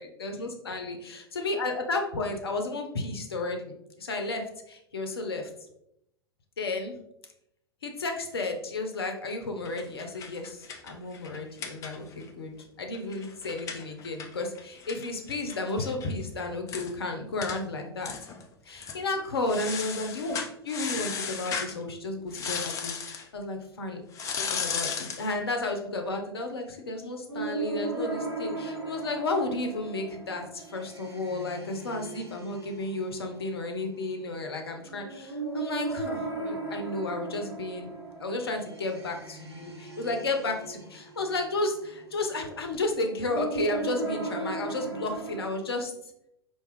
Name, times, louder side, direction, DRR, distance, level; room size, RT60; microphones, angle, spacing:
voice 1, 0.0-5.5 6.6-7.0 7.8-12.5 12.8-18.2 18.6-20.4 20.6-24.0 24.4-37.9 38.2-45.9, left 2 dB, 70° left, 4 dB, 0.7 m, -33 dB
sound 1, 9.7-12.3 12.6-12.7 12.9-16.1 16.4-16.5 16.7-16.9 17.4-17.6 18.0-18.4 18.8-19.0 19.5-21.8 22.3-23.3 24.1-25.3, left 6 dB, 25° left, 0.5 m, -35 dB
sound 2, 27.3-45.5, right 3 dB, 85° right, 0.9 m, -37 dB
4.7 x 2.9 x 3.1 m, 0.79 s
figure-of-eight pair, 90°, 13 cm